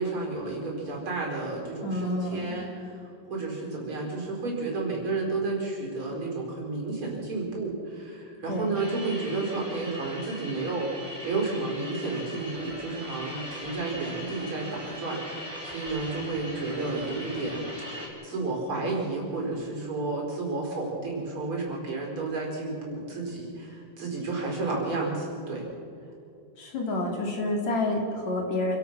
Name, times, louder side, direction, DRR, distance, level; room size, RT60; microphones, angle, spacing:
voice 1, 0.0-3.0 3.3-10.9 11.2-17.7 18.2-25.7, right 3 dB, 45° right, -2 dB, 5.5 m, -31 dB
voice 2, 1.8-2.6 8.5-8.8 26.6-28.8, left 2 dB, 65° left, 1 dB, 4.0 m, -29 dB
sound 1, 8.7-18.1, equal, 10° left, 4.1 m, -40 dB
28.0 x 17.0 x 6.1 m, 2.6 s
omnidirectional pair, 3.4 m